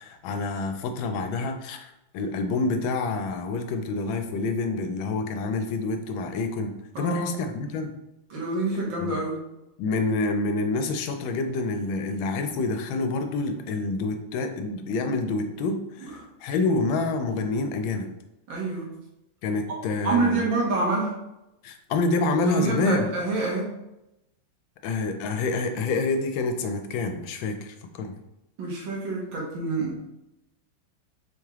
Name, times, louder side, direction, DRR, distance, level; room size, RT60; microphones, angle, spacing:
voice 1, 0.0-7.9 9.0-9.2 9.8-18.1 19.4-20.4 21.6-23.1 24.8-28.2, left 3 dB, 80° left, 6 dB, 1.3 m, -27 dB
voice 2, 8.3-9.4 16.0-16.1 16.7-16.8 18.5-18.9 20.0-21.2 22.4-23.8 28.6-30.1, right 3 dB, 75° right, -3 dB, 1.9 m, -27 dB
4.4 x 3.2 x 3.5 m, 0.90 s
omnidirectional pair, 2.1 m